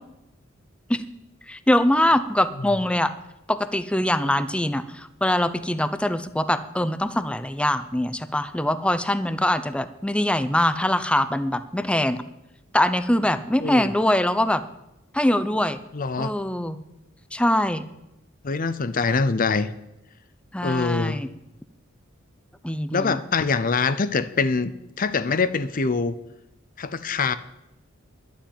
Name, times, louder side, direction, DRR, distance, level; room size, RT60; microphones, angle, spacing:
voice 1, 1.5-3.1 3.5-12.2 12.7-14.6 15.1-15.8 16.2-16.8 17.3-17.8 20.5-21.3 22.6-23.2, left 1 dB, 5° left, 13 dB, 0.6 m, -23 dB
voice 2, 13.6-13.9 15.9-16.3 18.4-19.7 20.6-21.2 22.9-24.7 25.0-26.1 26.8-27.3, left 4 dB, 45° left, 13 dB, 0.6 m, -24 dB
11.5 x 7.3 x 8.9 m, 0.90 s
head